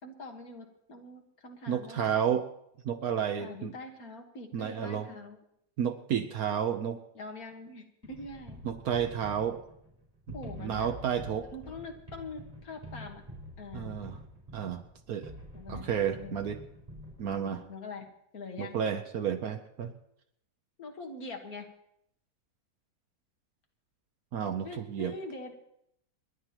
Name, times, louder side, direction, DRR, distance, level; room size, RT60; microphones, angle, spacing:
voice 1, 0.0-2.2 3.4-5.4 7.1-8.6 10.3-10.9 11.4-13.2 13.6-14.0 15.5-16.5 17.3-18.1 18.3-18.8 20.8-21.7 24.6-25.6, left 3 dB, 60° left, 3 dB, 2.1 m, -44 dB
voice 2, 1.7-2.4 2.8-3.7 4.5-5.1 5.8-7.0 8.6-9.6 10.6-11.5 13.7-14.2 14.5-14.8 15.1-15.3 15.7-16.6 17.2-17.6 18.6-19.9 24.3-25.1, right 8 dB, 65° right, 8 dB, 1.1 m, -31 dB
sound 1, 8.0-17.6, left 1 dB, 25° right, 4.4 m, -47 dB
27.5 x 11.5 x 3.0 m, 0.76 s
omnidirectional pair, 1.8 m